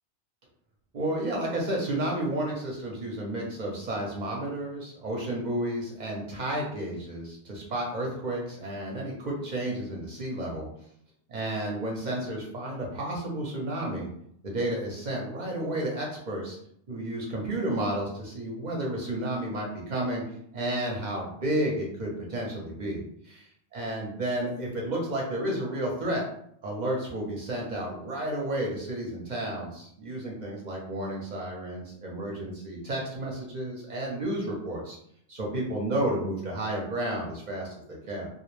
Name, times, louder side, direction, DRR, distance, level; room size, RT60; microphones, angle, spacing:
voice 1, 0.9-10.7 11.3-14.1 14.4-16.6 16.9-20.2 20.5-23.5 23.7-26.2 26.6-35.0 35.3-38.3, right 1 dB, 50° right, -2 dB, 0.6 m, -31 dB
2.2 x 2.0 x 3.0 m, 0.70 s
omnidirectional pair, 1.2 m